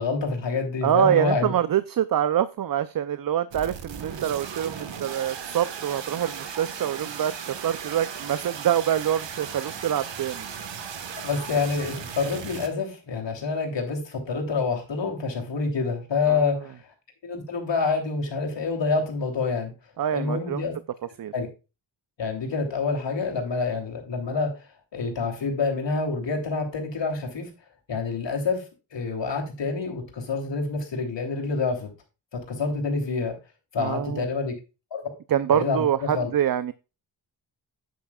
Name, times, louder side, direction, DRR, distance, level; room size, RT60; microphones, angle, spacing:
voice 1, 0.0-1.5 11.2-16.8 17.2-19.7 20.1-20.7 21.3-21.5 22.2-24.5 24.9-27.5 27.9-28.6 28.9-31.9 32.3-33.4 33.7-34.5 34.9-35.0 35.5-36.3, left 4 dB, 70° left, 2 dB, 3.2 m, -27 dB
voice 2, 0.8-10.5 16.3-16.5 20.0-20.6 21.2-21.3 33.8-34.3 35.3-36.7, right 10 dB, 50° right, 14 dB, 0.6 m, -25 dB
sound 1, 3.5-12.7, right 7 dB, 70° right, 1.5 m, -37 dB
9.2 x 9.1 x 2.4 m, 0.30 s
cardioid pair, 75°, 45 cm